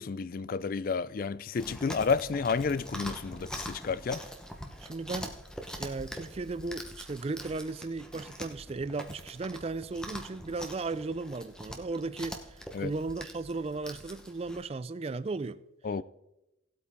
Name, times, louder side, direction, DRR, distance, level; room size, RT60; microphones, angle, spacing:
voice 1, 0.0-4.2 12.7-12.9 15.8-16.0, left 5 dB, 45° left, 0.3 m, -31 dB
Chewing mastication, 1.6-14.6, equal, 5° left, 0.9 m, -43 dB
voice 2, 4.8-5.4 5.8-15.6, right 3 dB, 30° right, 0.3 m, -36 dB
18.0 x 8.4 x 3.6 m
head